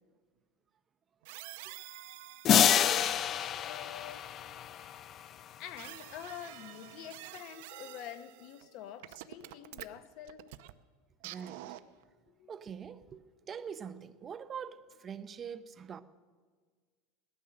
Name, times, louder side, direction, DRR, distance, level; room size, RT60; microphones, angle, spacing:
sound 1, 1.2-2.9 5.8-8.7 9.0-10.7 11.2-12.0, right 16 dB, 65° right, 0.7 m, -48 dB
sound 2, 2.4-5.2, left 9 dB, 25° left, 0.4 m, -27 dB
voice 1, 3.6-4.2 5.6-10.4 12.3-12.5, left 11 dB, 45° left, 0.9 m, -47 dB
voice 2, 11.2-11.7 12.5-16.0, right 7 dB, 20° right, 0.5 m, -44 dB
17.5 x 12.5 x 6.6 m
supercardioid pair, 165°, 0 cm